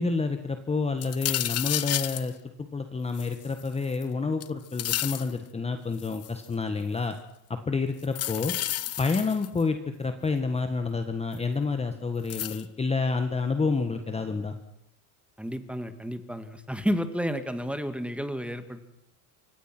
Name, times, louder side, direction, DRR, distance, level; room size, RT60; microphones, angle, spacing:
voice 1, 0.0-7.1 7.7-8.5 9.0-14.5, left 4 dB, 15° left, 7 dB, 1.5 m, -29 dB
sound 1, 1.0-2.3 3.1-4.0 4.4-5.3 6.0-6.4 8.0-9.6 11.3-11.4 12.3-12.6, left 13 dB, 30° left, 0.9 m, -31 dB
voice 2, 15.4-18.8, equal, ahead, 9 dB, 2.0 m, -31 dB
28.0 x 25.0 x 6.1 m, 0.79 s
supercardioid pair, 135°, 47 cm